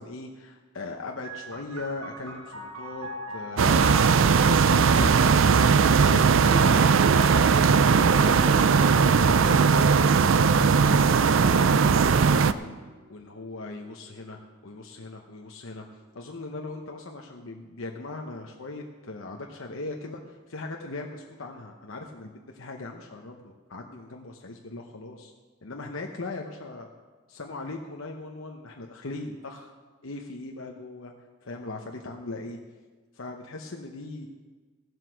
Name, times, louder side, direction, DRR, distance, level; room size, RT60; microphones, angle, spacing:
voice 1, 0.0-11.8 12.1-12.8 13.1-14.4 14.6-15.8 16.1-25.3 25.6-26.9 27.3-29.7 30.0-31.1 31.4-32.6 33.1-34.3, left 2 dB, 70° left, 2 dB, 0.9 m, -39 dB
sound 1, 1.2-14.5 15.3-16.1, equal, 85° right, 1.7 m, -42 dB
sound 2, 3.6-12.5, right 5 dB, 65° right, 0.4 m, -19 dB
15.5 x 7.9 x 6.3 m, 1.4 s
head